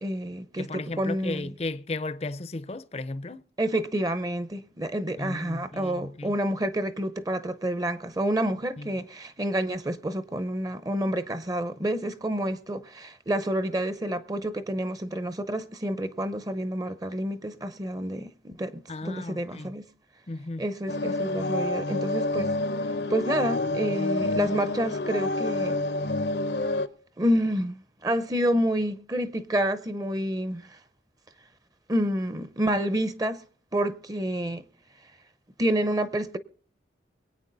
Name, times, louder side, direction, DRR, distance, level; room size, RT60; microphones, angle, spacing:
voice 1, 0.0-1.5 3.6-19.8 20.6-22.5 23.1-25.8 27.2-30.8 31.9-33.4 33.7-34.6 35.6-36.4, right 1 dB, 20° right, 0.6 m, -28 dB
voice 2, 0.6-3.5 5.2-6.3 8.8-8.9 18.9-19.7 20.3-20.6, left 2 dB, 35° left, 0.5 m, -35 dB
sound 1, 20.9-26.9, left 2 dB, 75° left, 0.8 m, -28 dB
22.5 x 8.9 x 3.9 m
head